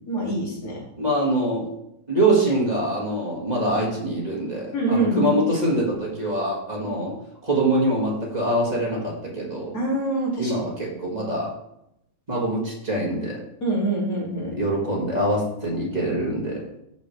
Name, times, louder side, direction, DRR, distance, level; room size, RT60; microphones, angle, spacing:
voice 1, 0.1-0.8 4.7-5.3 6.8-7.0 9.7-10.7 13.6-14.5, right 2 dB, 70° left, -4 dB, 3.0 m, -25 dB
voice 2, 1.0-1.7 2.1-9.8 10.4-11.5 12.3-13.4 14.5-16.6, right 1 dB, 30° right, -3 dB, 2.1 m, -24 dB
13.0 x 5.1 x 3.3 m, 0.79 s
omnidirectional pair, 1.6 m